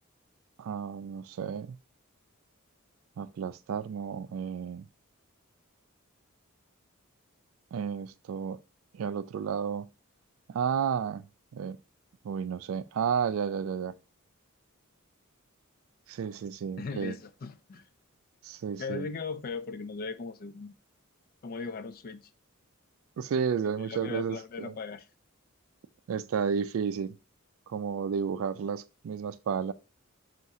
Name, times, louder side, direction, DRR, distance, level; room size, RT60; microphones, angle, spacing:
voice 1, 0.6-1.8 3.2-4.9 7.7-8.6 8.9-9.9 10.5-11.3 11.5-11.8 12.2-13.9 16.1-17.2 18.4-19.1 23.2-24.7 26.1-27.2 27.7-29.7, right 7 dB, 70° right, 0.3 m, -32 dB
voice 2, 16.8-17.9 18.8-20.8 21.4-22.3 23.9-25.1, left 4 dB, 45° left, 0.4 m, -38 dB
3.6 x 2.5 x 4.1 m
head